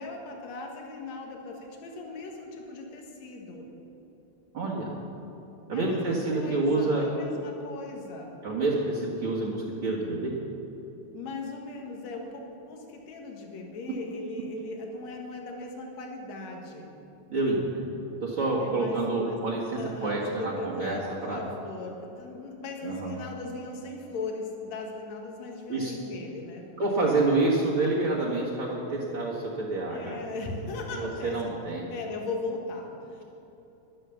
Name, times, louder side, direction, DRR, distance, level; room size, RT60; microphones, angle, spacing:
voice 1, 0.0-3.7 5.7-8.4 11.1-16.9 18.6-19.4 19.7-26.7 29.9-31.6 31.9-33.2, left 3 dB, 65° left, 1 dB, 2.7 m, -38 dB
voice 2, 4.5-4.9 5.7-7.1 8.4-10.3 17.3-21.0 21.3-21.4 22.8-23.1 25.7-25.9 26.8-30.2 30.9-31.9, right 2 dB, 45° right, -6 dB, 2.2 m, -28 dB
11.5 x 11.5 x 7.1 m, 3.0 s
omnidirectional pair, 3.4 m